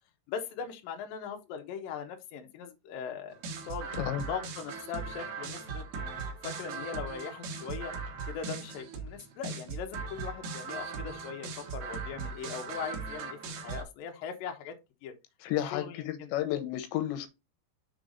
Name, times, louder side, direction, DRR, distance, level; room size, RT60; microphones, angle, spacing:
voice 1, 0.3-3.3 3.6-3.9 4.2-7.9 8.3-13.4 13.6-14.8 15.0-15.1 15.7-16.3, left 7 dB, 70° left, 2.4 m, -40 dB
sound 1, 3.3-13.8, right 4 dB, 75° right, 1.6 m, -39 dB
voice 2, 15.4-17.3, left 13 dB, 85° left, 3.1 m, -32 dB
6.5 x 4.2 x 3.9 m
omnidirectional pair, 5.1 m